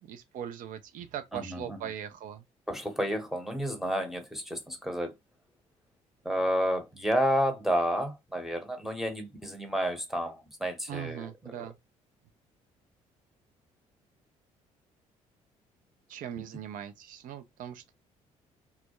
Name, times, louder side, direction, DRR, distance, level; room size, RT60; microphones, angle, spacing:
voice 1, 0.0-2.4 10.9-11.8 16.1-17.9, right 9 dB, 50° right, 0.4 m, -40 dB
voice 2, 1.3-1.8 2.7-5.1 6.2-11.5, equal, ahead, 0.8 m, -30 dB
2.3 x 2.1 x 2.8 m
hypercardioid pair, 45°, 17 cm